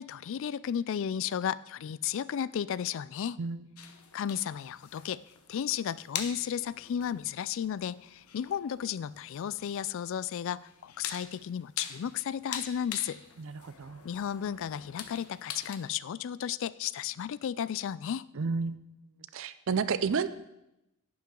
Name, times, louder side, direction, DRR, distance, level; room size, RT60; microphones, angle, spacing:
voice 1, 0.0-3.4 4.1-5.2 5.5-13.2 14.0-18.3, left 9 dB, 60° left, 19 dB, 0.3 m, -34 dB
sound 1, 3.8-15.8, left 8 dB, 85° left, 0.9 m, -44 dB
voice 2, 13.4-14.0 18.3-18.8 19.3-20.3, right 5 dB, 60° right, 14 dB, 0.5 m, -31 dB
11.0 x 10.0 x 3.8 m, 0.89 s
head